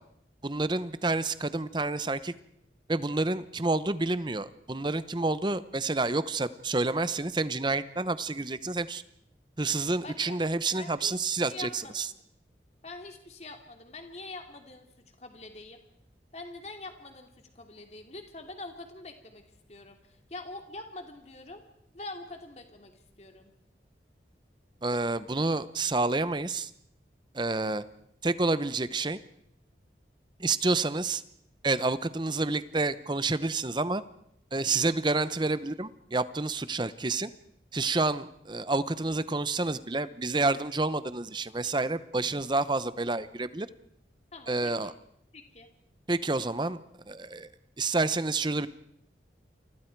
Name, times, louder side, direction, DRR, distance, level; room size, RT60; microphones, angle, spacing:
voice 1, 0.4-2.3 2.9-9.0 9.6-12.1 24.8-26.7 27.3-27.8 28.2-29.2 30.4-31.2 31.6-34.0 34.5-37.3 37.7-43.7 44.5-44.9 46.1-46.8 47.1-47.5 47.8-48.7, right 3 dB, 25° right, 14 dB, 0.8 m, -29 dB
voice 2, 10.0-10.4 10.8-11.1 11.5-12.2 12.8-14.9 15.2-15.8 16.3-21.6 21.9-22.9 23.2-23.5 44.3-44.9 45.3-45.7, left 2 dB, 35° left, 4 dB, 2.6 m, -44 dB
29.0 x 24.5 x 4.7 m, 0.74 s
head